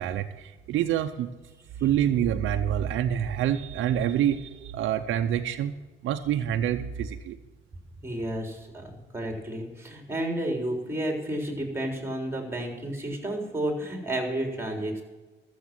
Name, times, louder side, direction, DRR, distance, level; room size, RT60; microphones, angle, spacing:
voice 1, 0.0-1.3 1.8-5.7 6.0-7.4, right 10 dB, 80° right, 5 dB, 0.7 m, -27 dB
voice 2, 8.0-15.0, right 1 dB, 10° right, 2 dB, 3.7 m, -31 dB
13.5 x 7.3 x 7.6 m, 1.2 s
cardioid pair, 90°, 20 cm